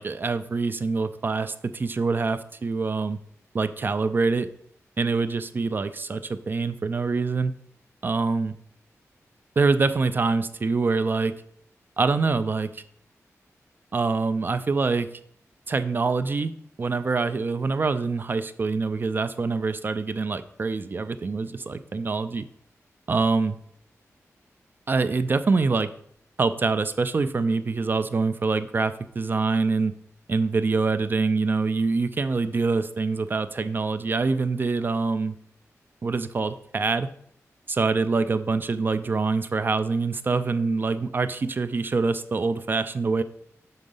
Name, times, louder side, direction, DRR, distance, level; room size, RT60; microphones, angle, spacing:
voice 1, 0.0-3.2 3.5-4.5 5.0-7.5 8.0-8.5 9.6-11.3 12.0-12.8 13.9-15.1 15.7-16.5 16.8-22.5 23.1-23.6 24.9-25.9 26.4-29.9 30.3-35.3 36.0-37.1 37.7-43.2, right 4 dB, 40° right, 12 dB, 0.4 m, -25 dB
6.3 x 3.9 x 5.4 m, 0.67 s
wide cardioid pair, 140°, 5 cm